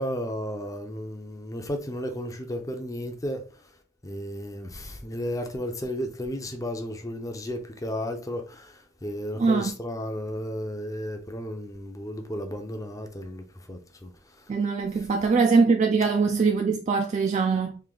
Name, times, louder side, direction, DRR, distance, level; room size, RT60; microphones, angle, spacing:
voice 1, 0.0-3.4 4.0-14.1, equal, 15° left, 0.6 m, -33 dB
voice 2, 9.4-9.7 14.5-17.8, right 4 dB, 35° right, 0.3 m, -22 dB
3.3 x 2.6 x 3.8 m
head